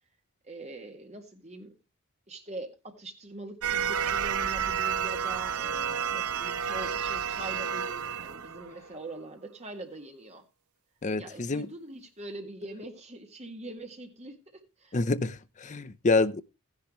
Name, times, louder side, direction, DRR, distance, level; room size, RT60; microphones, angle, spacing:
voice 1, 0.4-1.7 2.3-10.4 11.1-15.0, right 1 dB, 30° right, 1.9 m, -43 dB
sound 1, 3.6-9.1, right 7 dB, 85° right, 0.7 m, -30 dB
voice 2, 11.0-11.7 14.9-16.4, left 3 dB, 35° left, 0.5 m, -27 dB
14.5 x 10.5 x 3.0 m
head